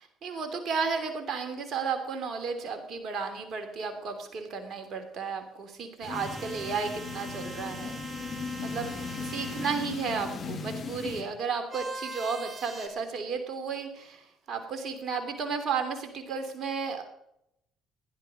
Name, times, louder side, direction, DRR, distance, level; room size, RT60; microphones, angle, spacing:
voice 1, 0.0-8.0 8.2-8.3 8.6-8.9 9.2-17.0, right 5 dB, 55° right, 6 dB, 3.1 m, -33 dB
sound 1, 6.0-11.2, left 4 dB, 55° left, 3.0 m, -37 dB
sound 2, 6.1-10.0 11.7-12.9, right 2 dB, 40° right, 3.1 m, -42 dB
15.5 x 11.0 x 5.3 m, 0.78 s
hypercardioid pair, 50°, 0 cm